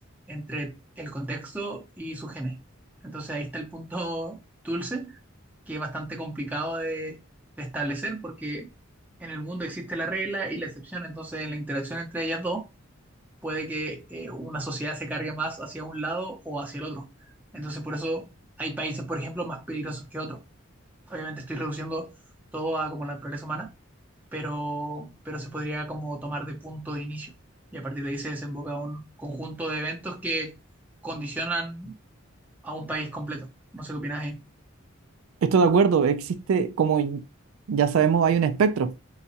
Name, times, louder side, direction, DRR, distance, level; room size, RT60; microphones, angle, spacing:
voice 1, 0.3-2.6 3.0-4.4 4.6-5.2 5.7-7.2 7.6-8.7 9.2-12.6 13.4-17.0 17.5-18.2 18.6-20.4 21.1-22.1 22.5-23.7 24.3-27.3 27.7-30.5 31.0-31.9 32.6-33.5 33.7-34.4, right 2 dB, 10° right, 0.7 m, -32 dB
voice 2, 35.4-37.2 37.7-39.0, right 6 dB, 80° right, 0.3 m, -21 dB
3.9 x 2.3 x 2.7 m
head